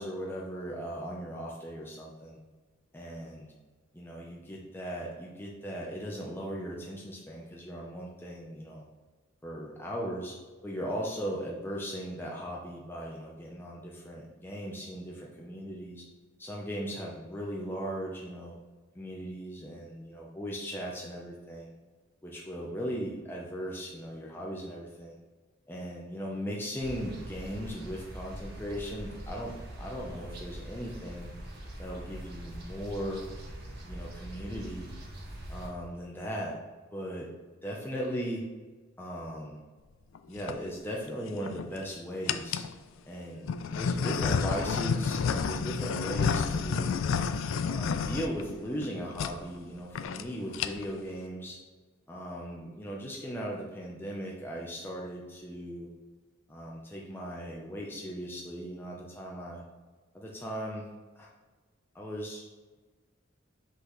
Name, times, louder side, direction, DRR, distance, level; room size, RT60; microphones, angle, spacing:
voice 1, 0.0-2.4 2.9-3.5 3.9-8.8 9.4-10.4 10.6-16.0 16.4-18.6 18.9-21.7 22.2-25.2 25.7-31.3 31.8-33.2 33.9-34.9 35.5-36.6 36.9-37.3 37.6-38.4 39.0-39.6 40.3-42.6 43.1-47.0 47.6-51.6 52.1-55.9 56.5-59.6 60.1-60.9 61.2-61.3 61.9-62.4, equal, 10° left, -3 dB, 0.7 m, -38 dB
sound 1, 26.8-35.7, right 1 dB, 55° right, 1.6 m, -43 dB
sound 2, 40.1-40.6 41.3-41.8 42.3-42.7 43.4-48.9 49.2-49.3 49.6-49.7 49.9-50.2 50.5-51.0, left 5 dB, 85° left, 0.4 m, -30 dB
6.0 x 5.5 x 3.1 m, 1.3 s
head